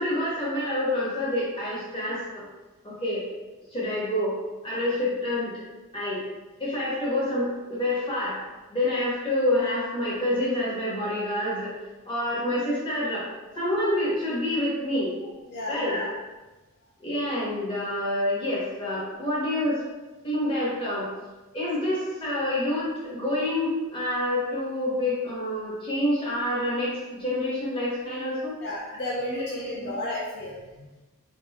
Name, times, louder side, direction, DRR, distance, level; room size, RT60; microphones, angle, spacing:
voice 1, 0.0-2.4 2.8-3.2 3.7-4.3 4.6-5.5 5.9-6.2 6.6-8.4 8.7-11.7 12.1-13.3 13.5-15.3 15.7-16.1 17.0-19.8 20.2-21.1 21.5-28.5 29.4-29.9, left 1 dB, 25° left, -8 dB, 0.8 m, -27 dB
voice 2, 15.5-15.8 28.6-30.9, left 1 dB, 50° left, -5 dB, 0.4 m, -33 dB
2.9 x 2.0 x 2.3 m, 1.1 s
head